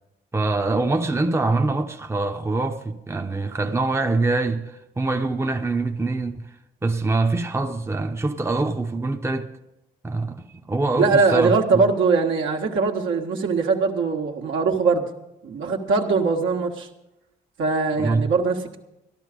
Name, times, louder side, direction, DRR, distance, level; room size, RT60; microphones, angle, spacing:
voice 1, 0.3-6.5 6.8-9.5 10.0-11.8 18.0-18.3, right 3 dB, 10° right, 0.9 m, -24 dB
voice 2, 11.0-15.0 15.4-16.9 17.6-18.8, right 4 dB, 70° right, 1.6 m, -21 dB
13.5 x 12.0 x 5.1 m
supercardioid pair, 55°, 21 cm